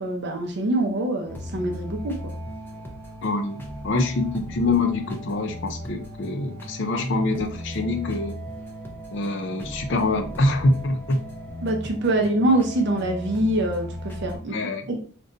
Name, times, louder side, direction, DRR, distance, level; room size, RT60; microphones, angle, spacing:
voice 1, 0.0-2.3 11.6-14.5 14.9-15.0, right 1 dB, 55° right, 2 dB, 0.5 m, -24 dB
sound 1, 1.3-14.4, equal, 10° left, 0.4 m, -36 dB
voice 2, 3.2-8.4 9.1-11.2 14.3-14.9, left 2 dB, 60° left, 5 dB, 0.5 m, -25 dB
2.5 x 2.2 x 3.7 m, 0.41 s
head